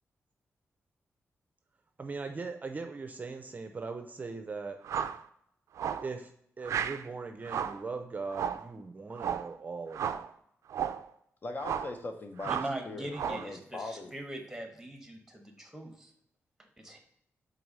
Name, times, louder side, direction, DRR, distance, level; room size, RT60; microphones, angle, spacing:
voice 1, 2.0-4.8 6.0-6.3 6.6-10.3, right 4 dB, 35° right, 6 dB, 0.5 m, -40 dB
sound 1, 4.8-5.2 5.8-6.1 6.6-7.0 7.4-7.8 8.3-8.7 9.2-9.5 9.9-10.3 10.7-11.0 11.6-12.0 12.4-12.8 13.1-13.5, right 8 dB, 90° right, 0.3 m, -33 dB
voice 2, 11.4-12.5 12.9-14.1, left 2 dB, 40° left, 6 dB, 0.6 m, -40 dB
voice 3, 12.4-16.1 16.8-17.0, right 1 dB, 5° right, 3 dB, 1.2 m, -41 dB
4.6 x 4.0 x 5.4 m, 0.73 s
wide cardioid pair, 110°, 5 cm